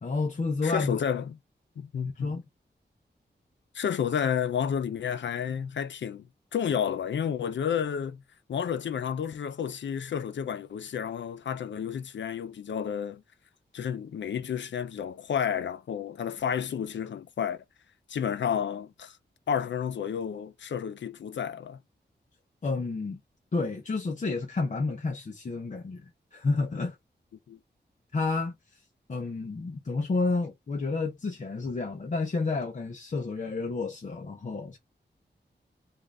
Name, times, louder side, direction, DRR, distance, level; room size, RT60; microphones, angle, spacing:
voice 1, 0.0-1.0 2.2-2.4 22.6-23.2 23.5-27.0 28.1-28.8 29.1-34.8, left 3 dB, 40° left, 0.7 m, -30 dB
voice 2, 0.6-1.4 1.8-2.4 3.7-6.3 6.5-8.2 8.5-13.2 13.7-17.6 18.1-19.2 19.5-21.8 27.5-27.6, left 8 dB, 80° left, 0.5 m, -31 dB
3.7 x 2.5 x 3.3 m
wide cardioid pair, 115°, 19 cm